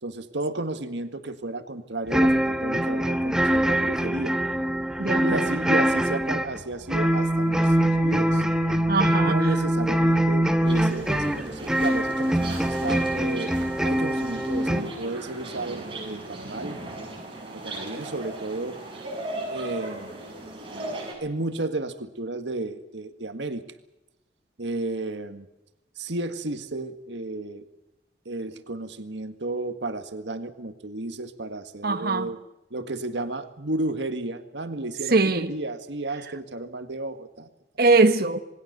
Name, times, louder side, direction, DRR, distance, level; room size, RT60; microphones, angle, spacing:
voice 1, 0.0-4.4 5.2-8.4 9.2-13.6 13.8-16.8 17.5-18.8 19.5-20.2 21.2-23.6 24.6-25.5 26.0-27.7 28.3-32.4 32.7-37.5, right 2 dB, 85° right, 1.8 m, -33 dB
sound 1, 2.1-14.8, right 1 dB, 5° right, 1.4 m, -23 dB
voice 2, 5.0-5.4 8.9-9.4 31.8-32.3 35.1-35.5 37.8-38.4, right 3 dB, 60° right, 1.5 m, -21 dB
sound 2, 10.7-21.1, right 1 dB, 30° right, 7.7 m, -37 dB
27.0 x 20.5 x 6.7 m
head